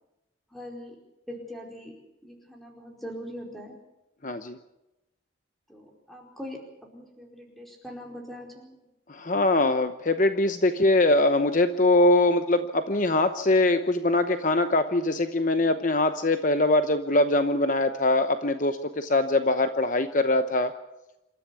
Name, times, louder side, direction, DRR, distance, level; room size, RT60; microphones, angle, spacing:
voice 1, 0.5-1.0 1.3-2.0 2.2-3.8 5.7-8.8, equal, ahead, 1 dB, 4.7 m, -41 dB
voice 2, 4.2-4.6 9.1-20.7, left 2 dB, 40° left, 9 dB, 0.9 m, -22 dB
27.0 x 13.5 x 8.4 m, 0.96 s
head